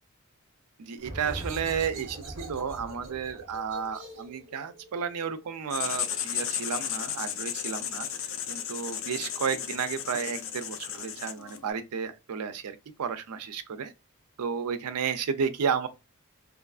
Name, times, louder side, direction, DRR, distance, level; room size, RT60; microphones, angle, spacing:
voice 1, 0.8-8.1 8.5-13.9 14.4-15.9, right 6 dB, 85° right, 0.4 m, -32 dB
sound 1, 1.0-6.4, right 1 dB, 55° right, 0.7 m, -42 dB
Writing, 5.7-11.7, left 9 dB, 60° left, 0.4 m, -34 dB
2.9 x 2.4 x 2.3 m
head